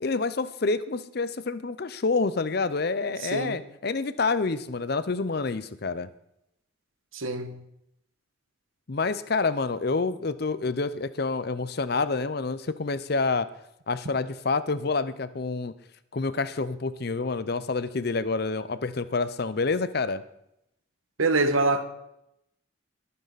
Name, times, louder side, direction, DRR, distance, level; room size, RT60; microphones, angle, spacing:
voice 1, 0.0-6.1 8.9-13.5 13.9-15.7 16.1-20.2, left 3 dB, 50° left, 0.6 m, -28 dB
voice 2, 7.1-7.6 21.2-21.8, right 3 dB, 85° right, 1.3 m, -24 dB
21.0 x 9.5 x 4.1 m
head